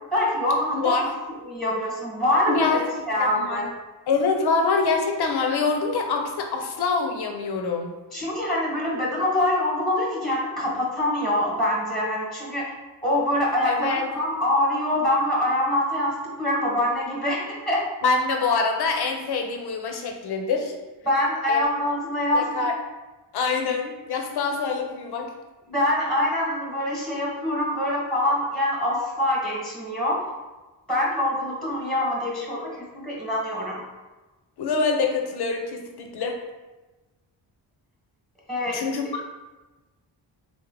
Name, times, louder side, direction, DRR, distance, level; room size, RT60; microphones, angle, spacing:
voice 1, 0.1-1.1 1.4-3.7 8.1-12.7 13.0-17.8 21.1-22.7 25.7-30.2 30.9-33.8 38.5-38.9, left 1 dB, ahead, -5 dB, 1.2 m, -25 dB
voice 2, 2.5-2.9 3.2-3.7 4.1-7.9 13.6-14.1 18.0-20.7 21.5-21.6 22.3-22.7 23.3-25.3 34.6-36.4 38.7-39.3, left 4 dB, 60° left, 3 dB, 0.7 m, -25 dB
3.3 x 2.0 x 3.7 m, 1.2 s
cardioid pair, 65°, 44 cm